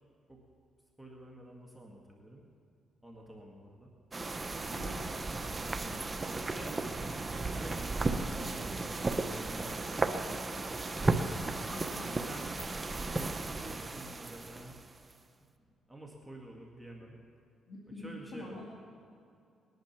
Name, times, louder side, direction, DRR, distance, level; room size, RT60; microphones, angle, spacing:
voice 1, 1.0-2.5 3.0-3.9 5.8-7.1 7.4-10.8 12.1-12.5 13.1-14.8 15.6-17.2 18.0-18.7, right 1 dB, ahead, -2 dB, 2.1 m, -50 dB
sound 1, 4.1-15.1, right 3 dB, 25° right, 0.9 m, -35 dB
voice 2, 4.7-5.1 11.7-12.1 17.7-18.7, left 2 dB, 60° left, -4 dB, 2.5 m, -45 dB
20.5 x 11.0 x 6.1 m, 2.5 s
cardioid pair, 90°, 0 cm